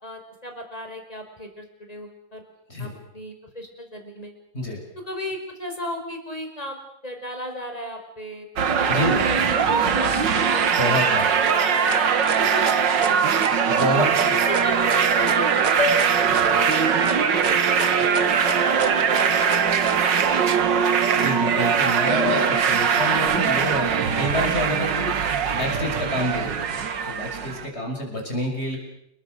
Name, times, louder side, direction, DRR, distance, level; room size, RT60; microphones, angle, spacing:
voice 1, 0.0-2.5 2.8-4.3 5.0-8.5 8.8-10.6 11.0-13.3 13.9-14.1 14.5-19.8 20.3-20.8 25.9-26.2, equal, 20° left, 4 dB, 5.2 m, -35 dB
sound 1, 8.6-27.7, right 7 dB, 80° right, 2.2 m, -21 dB
voice 2, 8.9-9.2 10.8-11.3 13.7-14.1 16.3-16.6 21.1-26.8 27.1-28.8, left 1 dB, 35° left, 1 dB, 6.9 m, -28 dB
sound 2, 11.4-20.0, right 4 dB, 30° right, 1.2 m, -32 dB
sound 3, 15.1-15.4 15.8-16.2 16.4-17.0 17.5-18.1 18.4-19.1 19.4-19.9 20.3-20.8 21.2-21.9 22.2-22.8, left 1 dB, 65° right, 7.9 m, -32 dB
29.5 x 22.0 x 6.7 m, 0.77 s
omnidirectional pair, 1.9 m